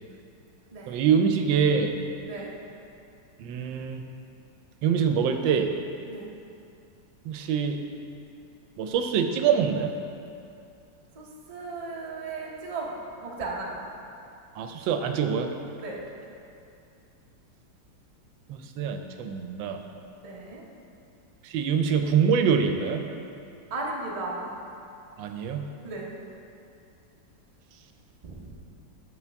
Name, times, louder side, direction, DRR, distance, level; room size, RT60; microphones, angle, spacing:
voice 1, 0.9-1.9 3.4-4.0 4.8-5.7 7.2-7.8 8.8-9.9 14.6-15.5 18.5-19.8 21.4-23.0 25.2-25.7, right 7 dB, 85° right, 6 dB, 1.3 m, -25 dB
voice 2, 11.2-12.9 13.2-13.8 15.8-16.1 20.2-20.6 23.7-24.6 25.8-26.1 28.2-28.5, right 3 dB, 30° right, -3 dB, 0.6 m, -35 dB
8.3 x 6.8 x 3.4 m, 2.6 s
omnidirectional pair, 2.0 m